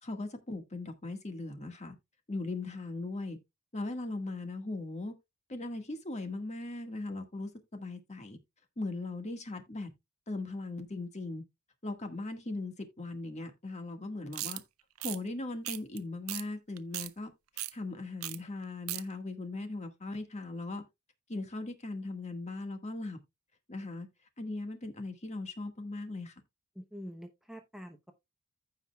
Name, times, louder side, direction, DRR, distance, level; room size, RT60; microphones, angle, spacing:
voice 1, 0.0-1.9 2.3-3.4 3.7-5.1 5.5-8.4 8.8-9.9 10.3-11.4 11.8-14.6 15.0-17.3 17.7-20.8 21.3-23.2 23.7-24.1 24.4-26.3, left 2 dB, 30° left, 1.7 m, -39 dB
sound 1, 14.3-14.6 15.0-15.2 15.6-16.0 16.3-16.4 16.8-17.1 17.6-17.7 18.2-18.4 18.6-19.0, right 16 dB, 75° right, 0.7 m, -37 dB
voice 2, 26.7-28.1, equal, ahead, 0.8 m, -46 dB
15.0 x 5.5 x 2.3 m
head